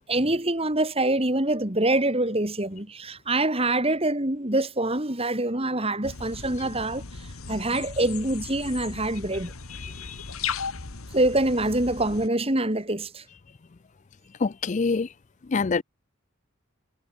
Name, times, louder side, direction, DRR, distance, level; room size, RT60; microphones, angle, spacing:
voice 1, 0.0-7.0 7.5-9.5 11.1-13.2, right 2 dB, 25° right, 2.9 m, -25 dB
sound 1, 6.0-12.3, left 5 dB, 90° left, 1.7 m, -37 dB
voice 2, 9.8-10.2 14.4-15.1 15.5-15.8, left 4 dB, 35° left, 0.4 m, -25 dB
head